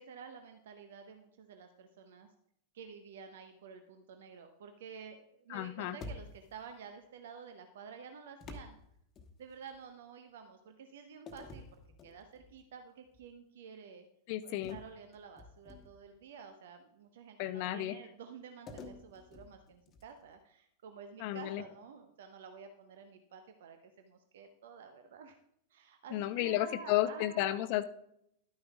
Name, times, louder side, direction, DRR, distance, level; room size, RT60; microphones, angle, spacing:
voice 1, 0.0-2.3 2.7-8.8 9.4-14.1 14.4-25.4 25.7-27.6, right 6 dB, 60° right, 7 dB, 0.7 m, -51 dB
voice 2, 5.5-6.0 14.3-14.8 17.4-17.9 21.2-21.6 26.1-27.8, left 14 dB, 45° left, 13 dB, 0.4 m, -32 dB
sound 1, 6.0-6.7 8.4-9.8 11.3-12.6 13.1-13.3 14.6-16.1 18.7-20.3, left 2 dB, 25° left, 1.2 m, -50 dB
11.5 x 9.5 x 2.3 m, 0.75 s
figure-of-eight pair, 90°, 0 cm